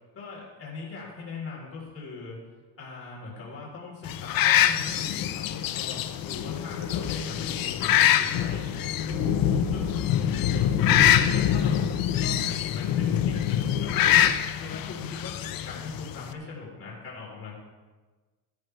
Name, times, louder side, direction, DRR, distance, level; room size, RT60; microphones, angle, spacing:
voice 1, 0.1-2.4 2.8-8.6 9.0-11.9 12.2-14.3 14.6-17.5, left 4 dB, 35° left, -4 dB, 4.1 m, -40 dB
sound 1, 4.1-16.3, left 11 dB, 60° left, 0.7 m, -26 dB
sound 2, 4.9-14.3, left 8 dB, 80° left, 1.1 m, -28 dB
13.0 x 12.5 x 3.4 m, 1.3 s
cardioid pair, 140°, 40 cm